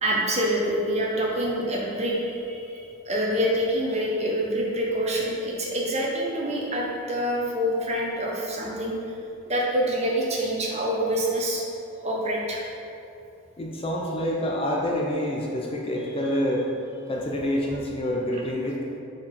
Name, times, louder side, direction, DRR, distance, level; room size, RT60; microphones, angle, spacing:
voice 1, 0.0-9.2 9.5-11.6 12.0-12.6, equal, 30° right, -3 dB, 1.0 m, -26 dB
voice 2, 13.6-16.7 17.1-18.8, equal, 25° left, -2 dB, 0.6 m, -27 dB
5.2 x 5.0 x 5.4 m, 2.7 s
head